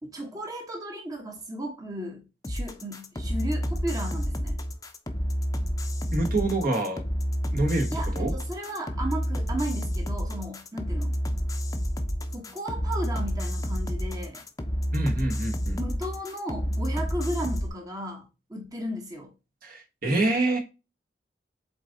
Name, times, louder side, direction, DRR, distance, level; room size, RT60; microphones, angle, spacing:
voice 1, 0.0-4.6 7.9-11.1 12.3-14.4 15.7-19.3, right 1 dB, 20° right, 1.1 m, -35 dB
sound 1, 2.4-17.7, equal, 20° left, 0.7 m, -29 dB
voice 2, 6.1-7.0 7.5-7.9 8.1-8.3 14.9-15.8 19.6-20.6, right 2 dB, 55° right, 1.6 m, -26 dB
7.4 x 4.0 x 3.9 m
head